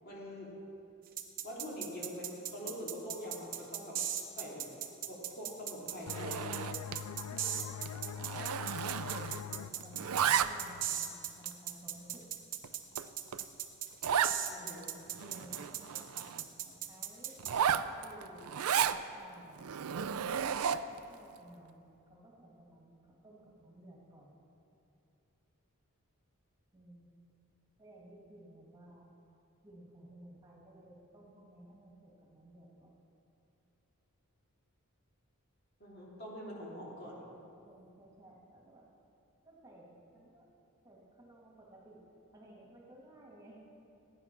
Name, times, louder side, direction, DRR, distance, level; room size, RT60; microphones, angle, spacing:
voice 1, 0.0-0.5 1.4-4.0 4.3-4.8 5.1-6.8 14.5-14.9 35.8-37.2, equal, 45° left, -4 dB, 3.0 m, -44 dB
sound 1, 1.2-17.5, right 10 dB, 40° right, 0.9 m, -38 dB
Zipper (clothing), 6.0-7.1 7.4-7.6 7.9-9.5 9.8-10.8 11.4-11.5 12.1-12.2 12.6-12.7 13.0-13.1 13.3-13.4 14.0-14.4 14.8-14.9 15.1-16.4 17.4-19.0 19.6-21.0, right 8 dB, 75° right, 0.4 m, -33 dB
sound 2, 6.1-11.5, left 8 dB, 75° left, 0.3 m, -44 dB
voice 2, 7.2-7.7 8.0-12.3 15.2-18.6 19.1-19.8 20.6-24.4 26.7-27.1 27.8-29.1 29.6-33.0 37.6-38.9 39.4-40.5 40.8-42.0 42.3-43.6, right 1 dB, 15° right, -3 dB, 1.9 m, -56 dB
14.5 x 9.6 x 5.9 m, 2.8 s
head